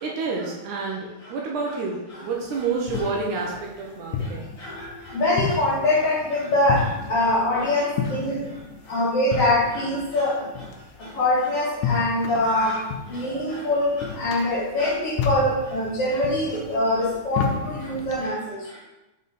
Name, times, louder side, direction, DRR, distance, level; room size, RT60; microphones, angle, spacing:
voice 1, 0.0-4.5, right 4 dB, 75° right, -2 dB, 2.1 m, -29 dB
sound 1, 2.4-18.3, left 6 dB, 75° left, 1.9 m, -32 dB
voice 2, 5.1-6.8 7.1-8.4 8.9-10.3 11.2-12.7 13.1-13.9 14.2-18.4, left 1 dB, 55° left, -6 dB, 2.1 m, -23 dB
5.4 x 5.4 x 4.0 m, 1.0 s
omnidirectional pair, 3.9 m